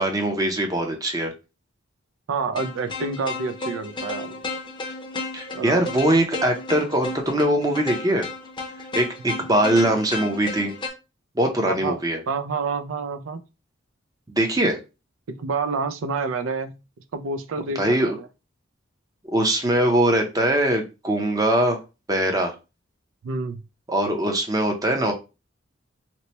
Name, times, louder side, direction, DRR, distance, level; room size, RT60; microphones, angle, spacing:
voice 1, 0.0-1.3 5.3-8.2 8.9-10.7 11.4-12.2 14.3-14.8 17.8-18.2 19.3-21.8 22.1-22.5 23.9-25.1, right 1 dB, 20° right, 0.6 m, -22 dB
voice 2, 2.3-4.4 5.5-5.8 11.6-12.0 12.3-13.4 15.3-16.8 17.1-18.3 23.2-23.6, right 4 dB, 85° right, 0.4 m, -28 dB
sound 1, 2.5-10.9, left 3 dB, 25° left, 0.6 m, -34 dB
2.9 x 2.1 x 4.1 m
head